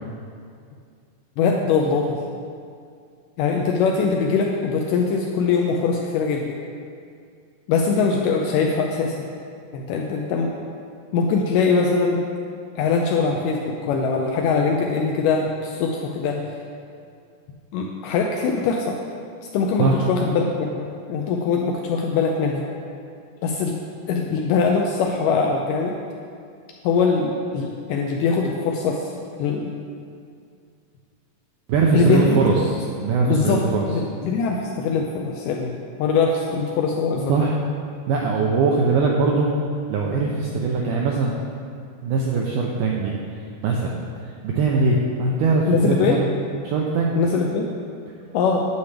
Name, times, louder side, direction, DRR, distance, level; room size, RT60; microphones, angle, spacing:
voice 1, 1.4-2.2 3.4-6.6 7.7-9.2 9.7-10.5 11.1-12.2 12.8-16.5 17.7-19.0 19.5-22.7 23.4-23.8 24.1-26.0 26.8-29.1 29.4-29.7 31.9-32.3 33.3-37.5 45.7-46.2 47.2-47.7 48.3-48.6, left 5 dB, 85° left, 0 dB, 1.9 m, -22 dB
voice 2, 31.7-33.9 37.3-37.6 38.1-39.5 39.9-41.3 42.0-43.1 43.6-43.9 44.2-46.2 46.6-47.2, right 4 dB, 85° right, -2 dB, 1.8 m, -21 dB
9.7 x 6.9 x 3.3 m, 2.3 s
omnidirectional pair, 4.3 m